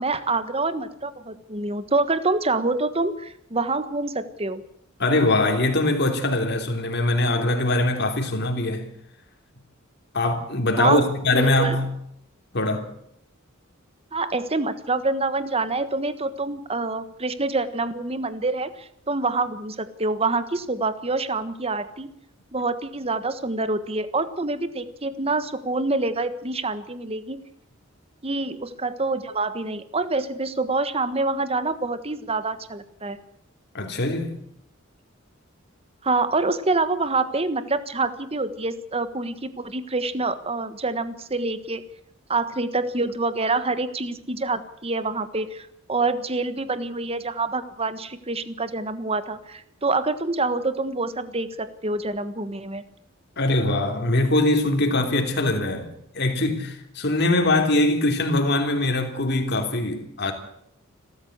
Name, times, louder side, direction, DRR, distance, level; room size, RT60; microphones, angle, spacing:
voice 1, 0.0-4.6 10.8-11.0 11.4-11.8 14.1-22.1 22.5-27.4 28.2-33.2 36.0-41.8 42.3-52.8, right 3 dB, 30° right, 1.4 m, -26 dB
voice 2, 5.0-8.9 10.1-11.9 12.5-12.9 33.7-34.4 53.4-60.3, left 2 dB, 55° left, 3.4 m, -22 dB
28.5 x 13.5 x 8.1 m
head